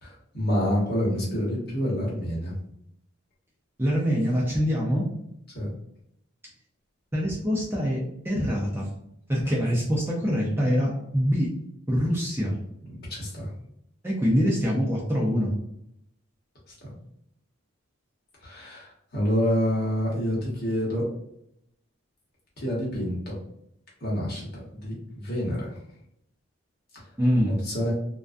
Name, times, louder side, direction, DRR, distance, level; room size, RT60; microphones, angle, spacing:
voice 1, 0.0-2.5 5.5-5.7 12.9-13.5 18.4-21.1 22.6-23.4 24.0-25.7 27.5-27.9, equal, 45° left, -5 dB, 1.0 m, -28 dB
voice 2, 3.8-5.1 7.1-8.9 9.3-11.5 11.9-12.5 14.0-15.5 27.2-27.5, equal, 10° right, -5 dB, 0.4 m, -24 dB
2.4 x 2.2 x 2.4 m, 0.75 s
head